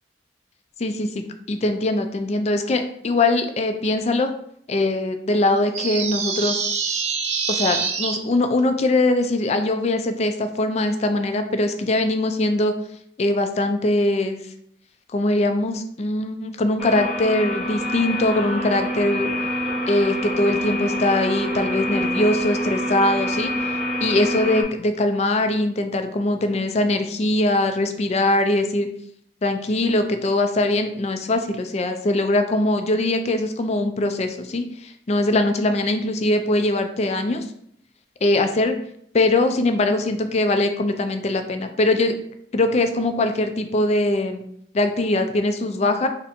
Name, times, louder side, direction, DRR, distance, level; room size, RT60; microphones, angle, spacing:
voice 1, 0.8-4.3 4.7-6.6 7.5-12.7 13.2-14.4 15.1-19.3 19.9-23.5 24.0-28.9 29.4-37.5 38.2-38.7 39.1-42.1 42.5-44.4 44.7-46.1, left 2 dB, 35° left, 7 dB, 0.4 m, -22 dB
sound 1, 5.7-8.2, right 5 dB, 40° right, 0.5 m, -25 dB
sound 2, 16.8-24.6, equal, ahead, 0.9 m, -26 dB
3.4 x 2.6 x 4.1 m, 0.69 s
head